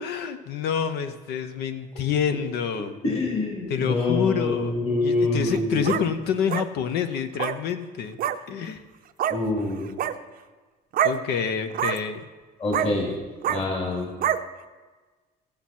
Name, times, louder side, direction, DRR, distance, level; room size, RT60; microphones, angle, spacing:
voice 1, 0.0-3.0 3.7-8.2 8.5-8.8 11.0-12.2, left 7 dB, 75° left, 10 dB, 0.8 m, -27 dB
voice 2, 3.0-6.1 9.3-9.9 12.6-13.1 13.4-14.1, left 2 dB, 35° left, -2 dB, 2.7 m, -26 dB
sound 1, 5.4-6.0 6.5-6.7 7.3-7.6 8.2-8.4 9.2-9.4 9.9-10.1 10.9-11.2 11.7-12.0 12.7-12.9 13.4-13.6 14.2-14.4, right 10 dB, 60° right, 0.6 m, -25 dB
14.5 x 7.9 x 4.3 m, 1.3 s
cardioid pair, 110°, 17 cm